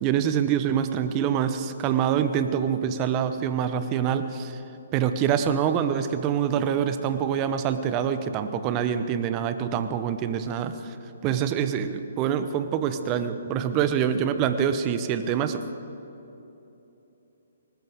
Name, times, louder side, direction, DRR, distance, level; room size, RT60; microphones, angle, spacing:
voice 1, 0.0-4.6 4.9-10.8 11.2-15.6, right 8 dB, 30° right, 10 dB, 0.9 m, -25 dB
20.0 x 19.5 x 3.7 m, 3.0 s
figure-of-eight pair, 130°, 0 cm